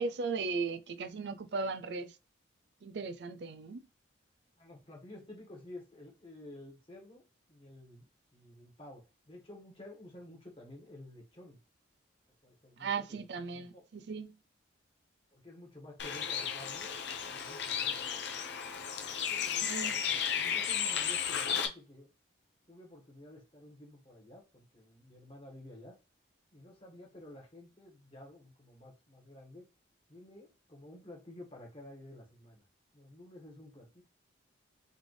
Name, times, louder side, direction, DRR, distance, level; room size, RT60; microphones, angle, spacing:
voice 1, 0.0-2.1 2.8-3.8 12.8-14.3 19.6-20.0, right 4 dB, 60° right, 0.4 m, -37 dB
voice 2, 4.6-11.6 12.4-13.8 15.3-18.4 19.1-22.1 22.7-26.0 26.5-29.7 30.1-32.6 32.9-34.0, left 1 dB, 30° left, 1.5 m, -52 dB
Bird, 16.0-21.7, left 8 dB, 60° left, 0.7 m, -34 dB
4.0 x 3.3 x 3.2 m
head